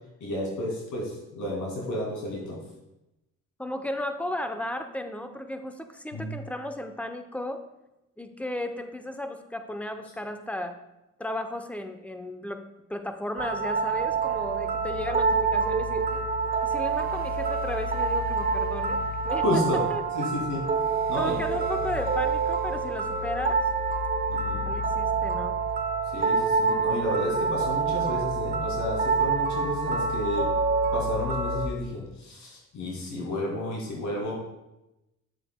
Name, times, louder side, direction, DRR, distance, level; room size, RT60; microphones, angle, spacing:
voice 1, 0.2-2.6 6.1-6.3 19.4-19.8 20.1-20.7 21.1-21.4 24.3-24.7 26.1-30.5 30.9-34.4, left 1 dB, 75° left, -3 dB, 2.3 m, -31 dB
voice 2, 3.6-7.6 8.2-10.8 11.2-12.6 12.9-16.2 16.6-20.0 21.2-23.6 24.5-25.6, left 1 dB, 5° left, 7 dB, 0.6 m, -34 dB
sound 1, 13.4-31.7, right 4 dB, 30° right, 0.8 m, -27 dB
9.0 x 7.3 x 2.2 m, 0.93 s
cardioid pair, 90°, 30 cm